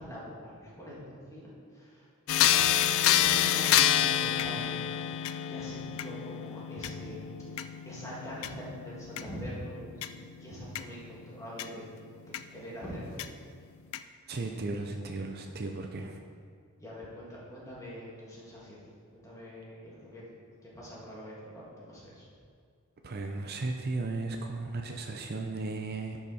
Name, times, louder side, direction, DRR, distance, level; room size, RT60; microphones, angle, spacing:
voice 1, 0.0-2.6 3.1-4.8 5.4-7.2 7.5-11.8 12.2-13.2 16.8-18.8 19.1-20.2 20.6-22.2, equal, 15° left, -6 dB, 2.2 m, -44 dB
sound 1, 2.3-11.7 12.3-12.4 13.2-13.3 13.9-14.0, left 11 dB, 70° left, 0.4 m, -28 dB
voice 2, 14.3-16.2 23.0-26.2, right 3 dB, 50° right, 4 dB, 0.6 m, -35 dB
10.5 x 5.9 x 4.2 m, 2.1 s
head